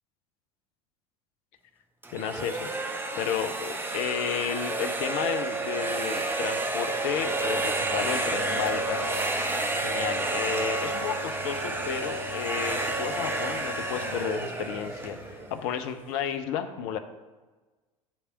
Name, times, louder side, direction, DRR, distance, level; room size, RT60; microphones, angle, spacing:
sound 1, 2.0-15.9, right 2 dB, 10° right, 0.8 m, -30 dB
voice 1, 2.1-2.7 3.2-9.0 9.8-17.0, left 8 dB, 50° left, 9 dB, 0.6 m, -32 dB
sound 2, 6.9-16.0, equal, 80° left, 1.5 m, -45 dB
7.1 x 3.3 x 6.2 m, 1.2 s
figure-of-eight pair, 70°, 18 cm